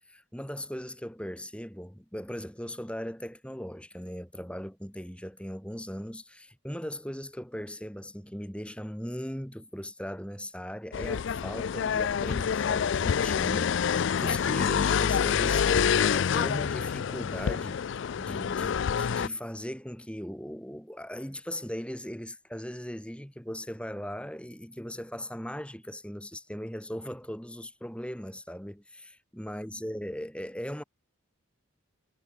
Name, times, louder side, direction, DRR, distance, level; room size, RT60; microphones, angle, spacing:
voice 1, 0.1-30.8, equal, 5° left, 3.8 m, -39 dB
sound 1, 10.9-19.3, left 7 dB, 60° left, 0.3 m, -27 dB
head